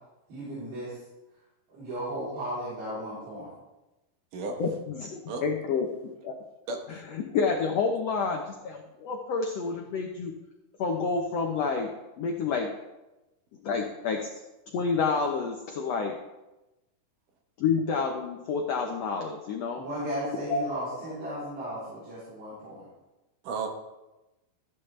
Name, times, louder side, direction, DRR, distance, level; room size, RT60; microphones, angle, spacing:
voice 1, 0.3-1.0 1.7-3.5 19.8-22.9, equal, 85° right, -11 dB, 5.5 m, -35 dB
voice 2, 4.6-5.9 6.2-6.3 7.1-10.3 10.8-11.9 12.2-12.7 13.6-14.3 14.7-16.2 17.6-19.8 20.5-20.6, left 5 dB, 90° left, 2 dB, 1.4 m, -29 dB
voice 3, 6.7-7.0 23.4-23.7, right 4 dB, 70° right, 3 dB, 2.5 m, -33 dB
13.5 x 9.6 x 3.3 m, 1.0 s
omnidirectional pair, 4.2 m